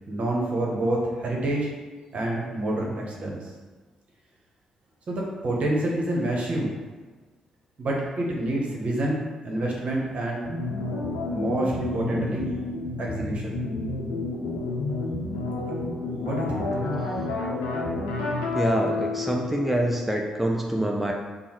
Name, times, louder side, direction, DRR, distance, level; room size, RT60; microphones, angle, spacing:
voice 1, 0.1-1.7 2.1-3.5 5.1-6.7 7.8-10.5 11.3-12.5 13.0-13.6 16.1-16.7, right 1 dB, 50° right, -2 dB, 0.9 m, -27 dB
sound 1, 10.4-20.1, left 3 dB, 80° left, 0.6 m, -30 dB
voice 2, 18.5-21.1, right 1 dB, 5° right, 0 dB, 0.5 m, -25 dB
5.2 x 2.1 x 3.1 m, 1.4 s
hypercardioid pair, 40°, 3 cm